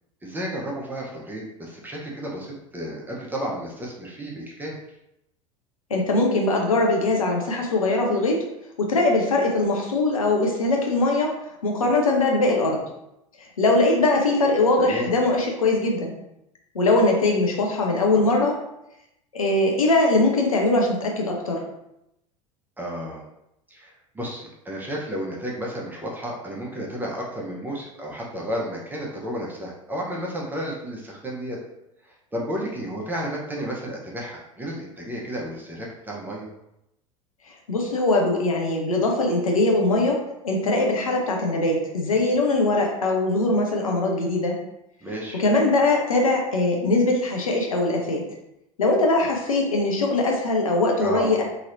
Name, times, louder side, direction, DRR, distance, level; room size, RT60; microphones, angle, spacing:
voice 1, 0.2-4.8 14.8-15.1 22.8-23.2 23.7-31.6 32.0-36.5 45.0-45.4 51.0-51.4, equal, 10° right, -3 dB, 0.7 m, -32 dB
voice 2, 5.9-8.4 8.8-11.4 11.6-12.8 13.6-16.1 16.7-18.6 19.3-21.6 37.7-44.6 45.3-48.3 48.8-51.4, left 2 dB, 85° left, 1 dB, 0.7 m, -21 dB
3.0 x 2.8 x 2.6 m, 0.84 s
figure-of-eight pair, 80°, 17 cm